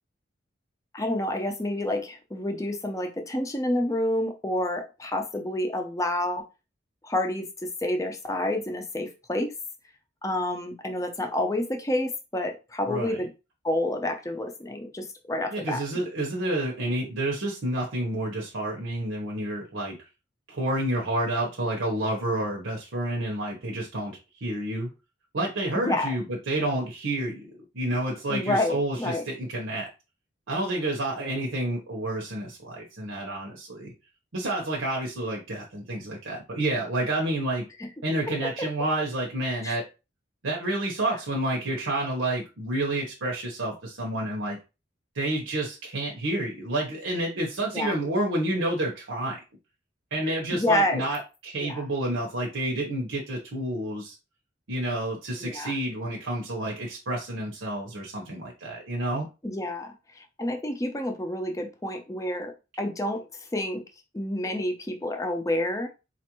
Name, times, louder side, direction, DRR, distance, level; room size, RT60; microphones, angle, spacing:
voice 1, 0.9-6.4 7.0-9.5 10.2-13.3 13.6-15.8 25.7-26.1 28.3-29.2 37.8-37.9 38.4-38.7 39.6-39.8 47.7-48.0 50.2-51.0 51.6-51.8 55.4-55.7 59.4-63.8 64.1-65.9, left 1 dB, 15° left, 4 dB, 0.5 m, -29 dB
voice 2, 12.9-13.2 15.5-20.0 20.5-24.9 25.3-27.5 27.7-29.9 30.5-33.9 34.3-37.6 38.0-39.8 40.4-44.6 45.1-49.4 50.1-54.2 54.7-59.3, right 1 dB, 90° right, -2 dB, 0.9 m, -29 dB
4.2 x 2.5 x 2.9 m, 0.29 s
head